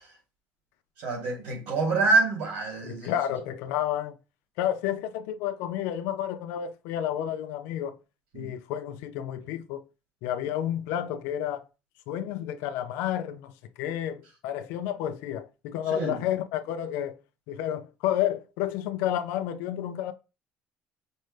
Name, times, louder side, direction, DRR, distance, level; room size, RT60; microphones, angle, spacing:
voice 1, 1.0-3.1 8.3-8.5 15.9-16.2, right 3 dB, 90° right, 2.2 m, -26 dB
voice 2, 2.8-4.2 4.6-8.0 8.3-9.9 10.2-11.7 12.1-17.2 17.5-20.1, left 11 dB, 85° left, 0.5 m, -31 dB
5.2 x 2.2 x 3.2 m
cardioid pair, 125°, 4 cm